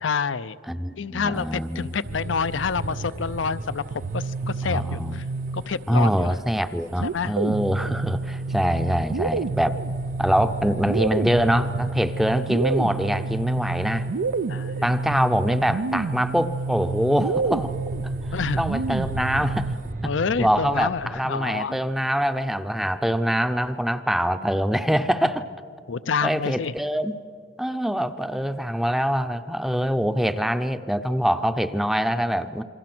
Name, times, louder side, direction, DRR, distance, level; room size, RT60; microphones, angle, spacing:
voice 1, 0.0-0.6 1.0-5.2 5.5-6.4 7.0-7.4 14.5-14.8 18.3-18.6 20.0-21.8 25.9-26.7, left 5 dB, 85° left, 14 dB, 0.6 m, -28 dB
voice 2, 0.7-2.0 4.6-5.2 5.9-9.8 10.2-14.1 14.8-17.7 18.6-19.7 20.0-20.1 20.4-25.5 26.2-27.2 27.6-32.6, equal, ahead, 9 dB, 0.6 m, -24 dB
sound 1, 2.0-21.2, right 2 dB, 45° right, 0.7 m, -37 dB
sound 2, 3.9-6.0 7.0-19.9, right 4 dB, 90° right, 0.5 m, -29 dB
28.0 x 23.0 x 6.1 m, 2.3 s
head